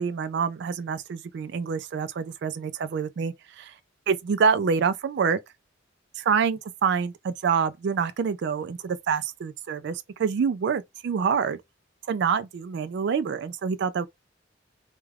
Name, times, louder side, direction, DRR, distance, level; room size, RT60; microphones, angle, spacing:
voice 1, 0.0-3.7 4.1-5.4 6.2-11.6 12.1-14.1, right 6 dB, 60° right, 0.3 m, -26 dB
2.3 x 2.2 x 3.2 m
head